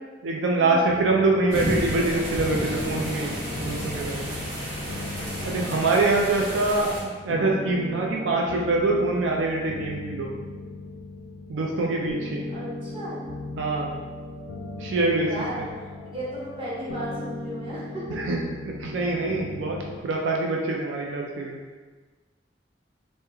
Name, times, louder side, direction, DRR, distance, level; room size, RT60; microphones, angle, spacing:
voice 1, 0.2-4.2 5.4-10.3 11.5-12.5 13.6-14.0 14.8-15.7 18.1-21.6, right 2 dB, 90° right, 0 dB, 0.4 m, -25 dB
sound 1, 0.9-20.0, left 2 dB, 75° left, 0.3 m, -37 dB
sound 2, 1.5-7.0, equal, 55° right, 1.0 m, -31 dB
voice 2, 12.5-13.2 14.7-15.7 16.0-18.2, right 1 dB, 30° right, -8 dB, 0.9 m, -36 dB
3.0 x 2.1 x 3.4 m, 1.4 s
head